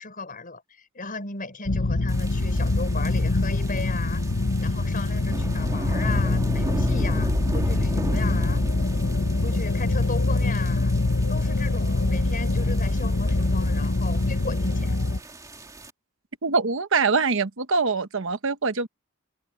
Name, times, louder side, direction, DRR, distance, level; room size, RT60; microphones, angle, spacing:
voice 1, 0.0-4.2 4.6-8.6 9.4-11.0 11.3-15.0, left 3 dB, 40° left, 5.4 m, -36 dB
sound 1, 1.7-15.2, left 2 dB, 65° left, 1.2 m, -24 dB
sound 2, 2.1-15.9, right 1 dB, 15° right, 2.2 m, -36 dB
voice 2, 16.4-18.9, right 4 dB, 65° right, 1.1 m, -23 dB
head